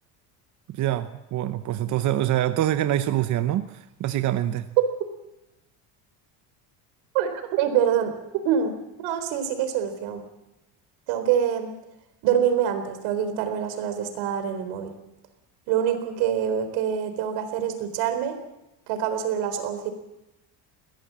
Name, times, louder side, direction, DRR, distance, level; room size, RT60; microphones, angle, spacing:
voice 1, 0.7-4.7, right 12 dB, 40° right, 10 dB, 0.9 m, -25 dB
voice 2, 7.1-8.1 8.4-8.7 9.0-10.2 11.1-11.7 12.2-14.9 15.7-18.3 18.9-19.9, right 9 dB, 80° right, 8 dB, 4.0 m, -25 dB
22.0 x 17.5 x 7.5 m, 0.93 s
cardioid pair, 150°, 44 cm